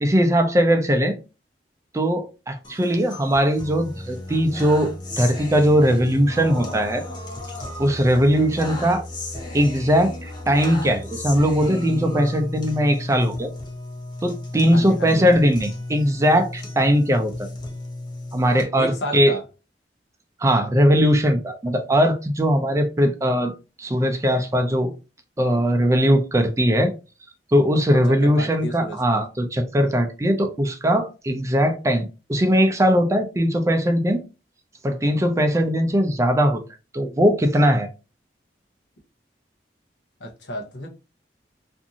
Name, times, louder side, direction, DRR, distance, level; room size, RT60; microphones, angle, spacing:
voice 1, 0.0-1.2 1.9-4.9 5.2-7.0 7.8-9.0 9.5-13.5 14.2-17.5 18.3-19.3 20.4-23.5 23.8-24.9 25.4-26.9 27.5-34.2 34.8-36.6 36.9-37.9, equal, 15° right, 0.4 m, -20 dB
sound 1, 2.6-18.6, left 1 dB, 25° left, 0.7 m, -34 dB
voice 2, 14.7-15.3 18.8-19.4 27.9-29.2 40.2-40.9, equal, 85° left, 0.8 m, -32 dB
2.6 x 2.5 x 2.7 m
head